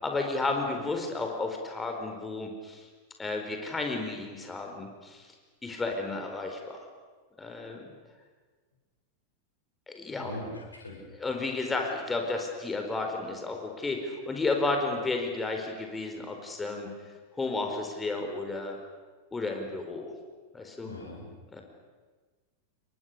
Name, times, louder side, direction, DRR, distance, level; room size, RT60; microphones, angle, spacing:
voice 1, 0.0-2.9 3.2-5.3 5.6-6.9 7.4-7.9 9.9-10.3 11.2-16.9 17.4-18.8 19.3-20.1 20.5-20.9 21.5-21.6, left 3 dB, 15° left, 3 dB, 4.5 m, -32 dB
voice 2, 10.2-11.0 20.9-21.3, left 1 dB, 80° left, -1 dB, 7.4 m, -40 dB
29.5 x 23.5 x 6.8 m, 1.4 s
figure-of-eight pair, 90°, 0 cm